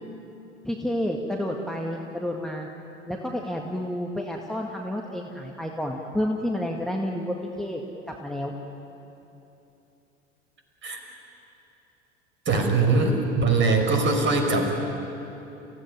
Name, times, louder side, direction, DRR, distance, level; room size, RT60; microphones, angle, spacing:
voice 1, 0.6-2.7 3.1-7.8 8.2-8.5, left 1 dB, ahead, 0 dB, 1.9 m, -30 dB
voice 2, 12.5-14.7, right 3 dB, 30° right, 4 dB, 5.3 m, -22 dB
29.5 x 16.5 x 9.8 m, 3.0 s
figure-of-eight pair, 75°, 35 cm